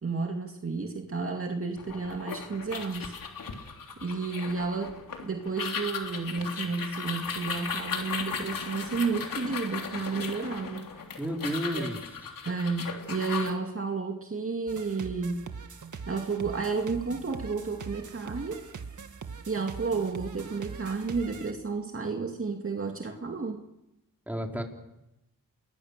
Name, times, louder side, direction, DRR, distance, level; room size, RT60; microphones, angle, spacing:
voice 1, 0.0-3.1 3.5-3.6 4.0-5.0 5.2-10.9 11.7-11.8 12.5-15.4 16.1-18.6 19.5-23.6, right 4 dB, 40° right, 3 dB, 2.3 m, -32 dB
sound 1, 1.8-13.5, left 5 dB, 75° left, 3.4 m, -37 dB
voice 2, 11.2-12.0 24.3-24.6, equal, 5° right, 1 dB, 4.3 m, -31 dB
sound 2, 14.7-21.5, right 5 dB, 60° right, 2.0 m, -42 dB
28.5 x 21.0 x 6.7 m, 0.91 s
cardioid pair, 75°, 34 cm